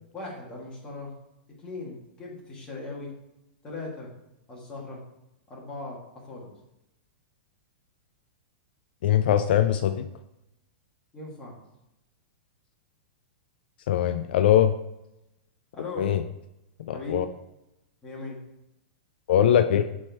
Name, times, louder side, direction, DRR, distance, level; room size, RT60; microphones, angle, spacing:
voice 1, 0.1-1.1 1.6-3.1 3.6-4.1 4.5-5.0 5.5-6.5 11.1-11.5 15.7-16.1 16.9-17.2 18.0-18.4, left 3 dB, 15° left, -4 dB, 1.6 m, -38 dB
voice 2, 9.0-10.1 13.9-14.7 16.0-16.2 16.8-17.2 19.3-19.9, left 10 dB, 60° left, 10 dB, 0.4 m, -21 dB
6.3 x 4.3 x 4.6 m, 0.89 s
supercardioid pair, 170°, 6 cm